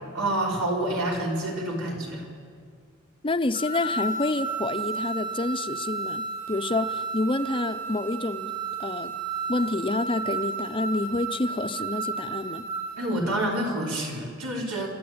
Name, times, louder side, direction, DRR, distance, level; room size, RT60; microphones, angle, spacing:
voice 1, 0.1-2.3 13.0-14.9, right 1 dB, 85° right, -1 dB, 4.6 m, -28 dB
voice 2, 3.2-8.5 8.8-9.1 9.5-12.6, left 2 dB, 25° left, 10 dB, 0.6 m, -28 dB
sound 1, 3.5-13.1, right 4 dB, 50° right, 5.3 m, -32 dB
27.0 x 13.0 x 8.7 m, 2.1 s
head